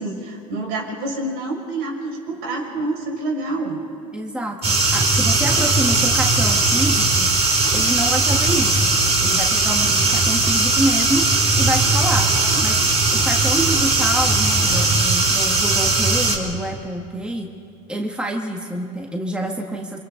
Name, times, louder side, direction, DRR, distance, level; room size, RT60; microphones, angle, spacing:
voice 1, 0.0-3.8 12.4-12.6, right 2 dB, 65° right, -1 dB, 6.0 m, -27 dB
voice 2, 4.1-7.3 7.7-8.9 9.2-11.3 11.6-12.3 12.6-12.8 13.1-17.5 17.9-20.0, right 1 dB, 5° right, 1 dB, 1.7 m, -27 dB
sound 1, 4.6-16.4, right 3 dB, 35° right, 4.3 m, -18 dB
29.5 x 25.0 x 3.9 m, 2.4 s
supercardioid pair, 110°, 19 cm